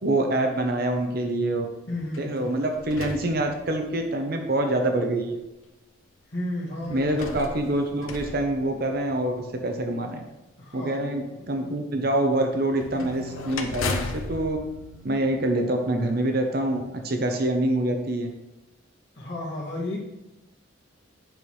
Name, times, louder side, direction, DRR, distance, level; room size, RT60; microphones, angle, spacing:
voice 1, 0.0-1.7 2.2-5.4 6.9-10.2 10.7-14.6 15.0-18.3, right 1 dB, 50° right, 4 dB, 0.7 m, -25 dB
voice 2, 1.9-2.4 6.3-7.2 10.6-11.4 19.2-20.0, left 1 dB, 55° left, -5 dB, 2.1 m, -33 dB
sound 1, 2.1-4.1 4.9-5.0 6.8-9.4 12.8-15.8, left 3 dB, 85° left, 0.8 m, -36 dB
sound 2, 12.9-16.8, right 1 dB, 5° right, 1.8 m, -48 dB
9.0 x 5.4 x 3.2 m, 1.0 s
head